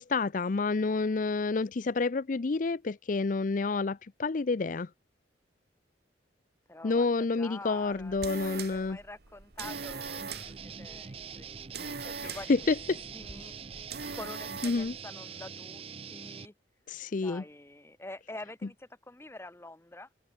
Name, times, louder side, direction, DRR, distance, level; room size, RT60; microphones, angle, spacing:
voice 1, 0.0-4.9 6.8-9.0 12.2-13.0 14.6-14.9 16.9-17.4, left 3 dB, 45° left, 0.5 m, -29 dB
voice 2, 6.7-12.7 13.1-13.5 14.1-16.5 17.2-20.1, left 2 dB, 15° left, 0.9 m, -47 dB
sound 1, 7.8-15.0, right 5 dB, 60° right, 1.5 m, -42 dB
sound 2, 9.6-16.5, right 6 dB, 30° right, 0.5 m, -44 dB
head